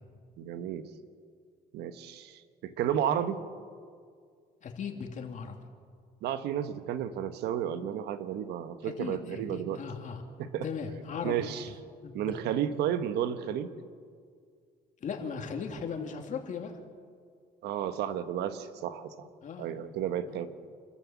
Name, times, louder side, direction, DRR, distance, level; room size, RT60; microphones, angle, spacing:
voice 1, 0.4-0.9 1.7-3.4 6.2-9.8 10.4-10.7 11.2-11.6 12.1-13.7 17.6-19.3 19.6-20.5, right 9 dB, 80° right, 10 dB, 1.3 m, -32 dB
voice 2, 4.6-5.6 8.8-10.2 10.6-11.7 12.0-12.1 15.0-16.7 19.4-19.7 20.3-20.4, left 6 dB, 45° left, 3 dB, 2.8 m, -38 dB
28.0 x 13.5 x 7.4 m, 2.1 s
cardioid pair, 110°, 17 cm